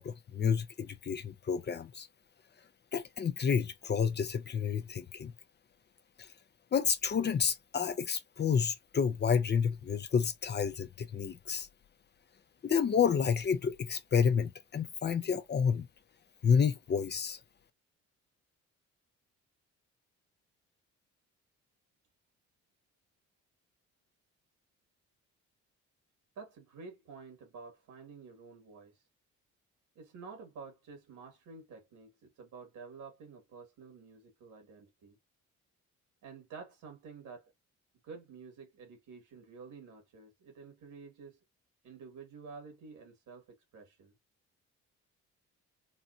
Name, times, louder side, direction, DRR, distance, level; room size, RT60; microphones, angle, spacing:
voice 1, 0.0-2.1 2.9-5.3 6.7-11.7 12.6-15.9 16.4-17.4, left 6 dB, 35° left, 0.6 m, -30 dB
voice 2, 26.4-28.9 30.0-35.2 36.2-37.4 38.1-41.4 41.8-43.4 43.7-44.1, right 5 dB, 80° right, 2.1 m, -50 dB
4.1 x 2.2 x 2.6 m
cardioid pair, 90°, 30 cm